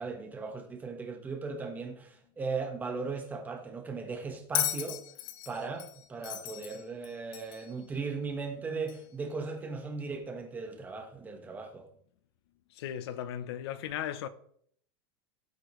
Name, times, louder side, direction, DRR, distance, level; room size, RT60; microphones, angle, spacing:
voice 1, 0.0-5.0 5.4-11.9, right 4 dB, 10° right, 1.4 m, -37 dB
Bell, 4.5-7.7 8.9-9.0, left 13 dB, 50° left, 1.0 m, -35 dB
voice 2, 12.7-14.3, left 10 dB, 75° left, 1.0 m, -36 dB
16.5 x 8.1 x 3.3 m
supercardioid pair, 170°, 13 cm